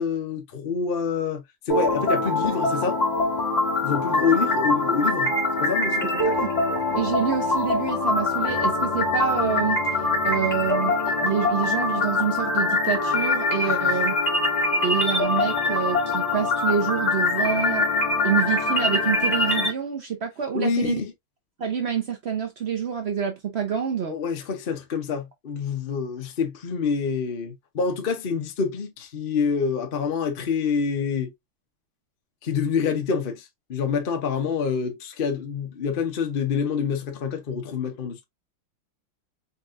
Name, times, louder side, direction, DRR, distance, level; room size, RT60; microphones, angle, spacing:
voice 1, 0.0-1.4 1.7-3.0 3.8-5.3 5.6-6.4 13.6-13.9 20.5-21.1 24.1-31.3 32.4-38.2, left 6 dB, 50° left, 0.6 m, -27 dB
sound 1, 1.7-19.7, left 2 dB, 20° left, 1.7 m, -23 dB
voice 2, 6.9-9.8 10.2-14.1 14.8-17.9 18.2-21.0 21.6-24.2, right 7 dB, 80° right, 0.5 m, -27 dB
4.6 x 4.1 x 2.4 m
omnidirectional pair, 2.3 m